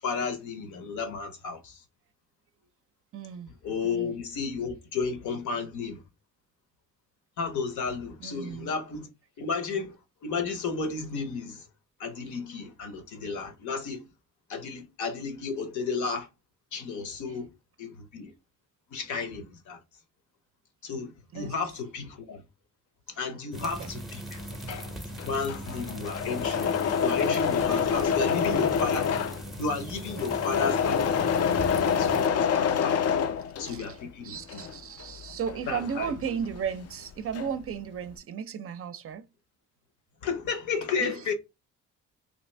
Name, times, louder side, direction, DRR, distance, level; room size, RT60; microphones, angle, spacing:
voice 1, 0.0-1.8 3.6-6.0 7.4-9.1 9.4-10.0 10.2-11.7 12.0-14.1 14.5-16.3 16.7-17.5 17.8-18.3 18.9-19.8 20.8-22.4 23.1-24.4 25.1-29.2 29.6-31.1 32.0-33.0 33.6-34.7 35.7-36.1 40.2-41.3, left 5 dB, 75° left, 0.9 m, -33 dB
voice 2, 3.1-3.5 3.8-4.1 8.2-8.8 21.3-21.5 23.6-23.9 31.7-31.8 33.6-34.0 34.2-39.2 41.0-41.2, right 7 dB, 50° right, 0.5 m, -35 dB
sound 1, 23.5-32.3, right 1 dB, ahead, 0.6 m, -39 dB
Engine / Mechanisms, 24.4-34.0 34.4-36.7 37.0-37.7, left 7 dB, 55° left, 0.5 m, -27 dB
2.9 x 2.5 x 3.1 m
cardioid pair, 90°, 30 cm